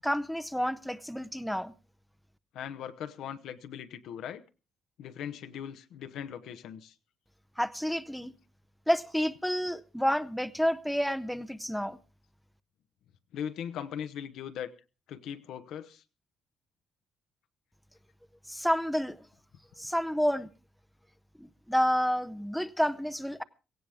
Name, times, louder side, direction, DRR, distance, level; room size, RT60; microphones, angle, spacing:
voice 1, 0.0-1.7 7.6-8.3 8.9-12.0 18.5-19.2 19.8-20.5 21.4-23.4, equal, ahead, 0.7 m, -29 dB
voice 2, 2.5-4.4 5.0-6.9 13.3-14.7 15.1-16.0, left 9 dB, 80° left, 1.0 m, -39 dB
17.5 x 15.5 x 3.5 m
cardioid pair, 90°, 0 cm